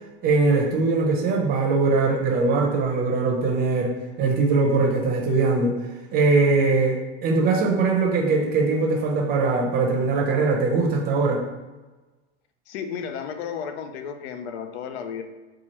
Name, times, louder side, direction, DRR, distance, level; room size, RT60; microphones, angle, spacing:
voice 1, 0.2-5.8 6.1-11.4, right 3 dB, 30° right, 1 dB, 0.6 m, -21 dB
voice 2, 12.7-15.2, left 7 dB, 70° left, 7 dB, 0.5 m, -33 dB
4.3 x 2.4 x 3.0 m, 1.2 s
supercardioid pair, 135°, 33 cm